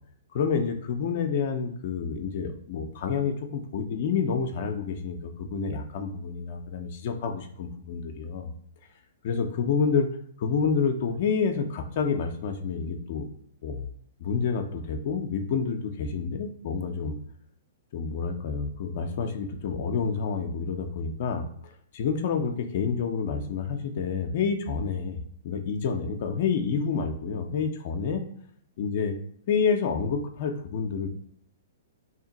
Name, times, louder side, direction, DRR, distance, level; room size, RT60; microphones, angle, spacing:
voice 1, 0.3-8.5 9.2-10.1 10.4-13.3 13.6-13.9 14.2-17.2 17.9-25.2 25.4-28.3 28.8-29.2 29.5-31.1, left 5 dB, 50° left, 4 dB, 0.4 m, -28 dB
2.8 x 2.5 x 3.8 m, 0.65 s
figure-of-eight pair, 115°, 0 cm